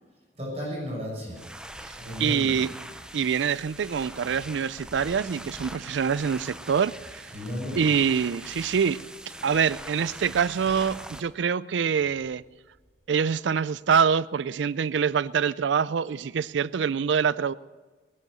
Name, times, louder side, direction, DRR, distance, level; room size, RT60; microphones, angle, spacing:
voice 1, 0.4-1.4 2.0-2.6 7.3-7.8, equal, 35° right, -3 dB, 6.8 m, -33 dB
sound 1, 1.3-11.2, right 1 dB, 5° right, 0.7 m, -42 dB
voice 2, 2.2-2.7 3.1-6.9 7.8-9.0 9.4-12.4 13.1-17.5, right 7 dB, 85° right, 19 dB, 0.4 m, -25 dB
19.0 x 11.0 x 6.6 m, 1.3 s
head